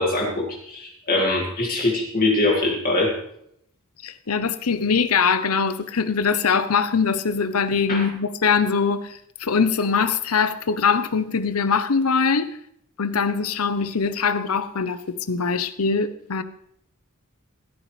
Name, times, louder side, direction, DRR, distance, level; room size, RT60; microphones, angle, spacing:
voice 1, 0.0-3.1 7.9-8.0, left 2 dB, 40° left, 2.1 m, -22 dB
voice 2, 4.0-12.5 13.0-16.4, left 5 dB, 75° left, 0.8 m, -22 dB
15.5 x 13.5 x 3.3 m
head